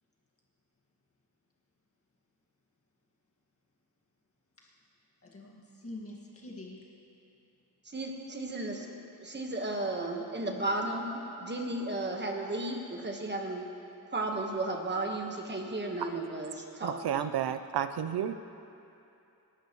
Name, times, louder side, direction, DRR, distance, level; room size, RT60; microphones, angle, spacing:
voice 1, 5.3-6.8, left 2 dB, 35° left, -3 dB, 1.8 m, -45 dB
voice 2, 7.9-8.9 9.2-11.1 11.4-13.6 14.1-17.3, right 2 dB, 30° right, 2 dB, 1.3 m, -34 dB
voice 3, 16.8-18.3, right 9 dB, 80° right, 11 dB, 0.6 m, -31 dB
27.0 x 12.5 x 3.1 m, 2.8 s
wide cardioid pair, 170°, 38 cm